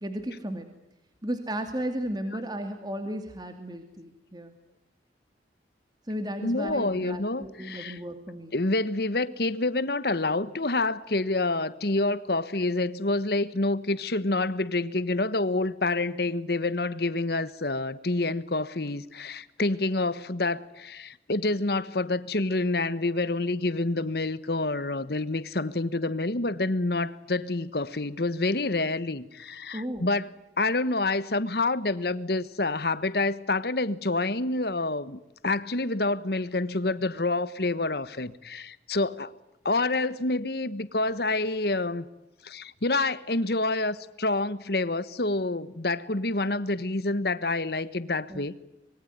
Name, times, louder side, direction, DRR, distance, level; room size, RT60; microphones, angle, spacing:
voice 1, 0.0-0.7 1.2-4.5 6.1-8.5 29.7-30.1 48.3-48.6, equal, 25° right, 2.5 m, -34 dB
voice 2, 6.4-8.0 8.5-39.3 39.6-42.0 42.4-48.6, left 2 dB, 60° left, 1.3 m, -28 dB
25.5 x 23.0 x 9.5 m
head